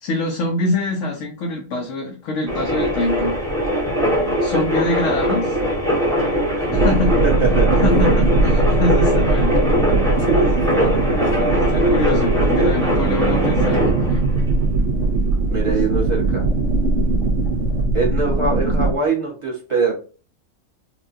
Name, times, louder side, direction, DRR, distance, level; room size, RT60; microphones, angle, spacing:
voice 1, 0.0-3.3 4.4-5.6 6.7-7.2 7.8-9.6 10.4-10.6 11.4-14.2, left 2 dB, 80° left, 1 dB, 1.1 m, -24 dB
sound 1, 2.5-17.8, equal, 5° left, 1.0 m, -22 dB
sound 2, 6.7-18.9, right 3 dB, 70° right, 0.9 m, -20 dB
voice 2, 7.2-7.7 10.1-12.8 15.5-16.4 17.9-19.9, right 4 dB, 25° right, -4 dB, 1.3 m, -24 dB
4.4 x 2.3 x 2.6 m, 0.36 s
omnidirectional pair, 1.3 m